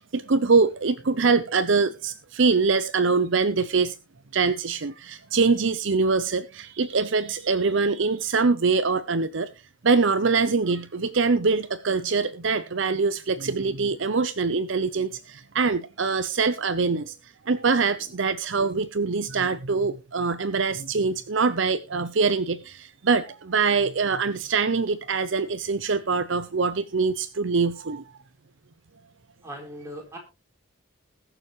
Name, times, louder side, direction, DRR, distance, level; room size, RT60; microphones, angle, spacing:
voice 1, 0.0-3.9 4.3-9.5 9.8-17.1 17.5-28.0, right 4 dB, 60° right, 0.7 m, -24 dB
voice 2, 29.4-30.2, equal, 15° right, 3.9 m, -39 dB
20.5 x 6.9 x 3.1 m
head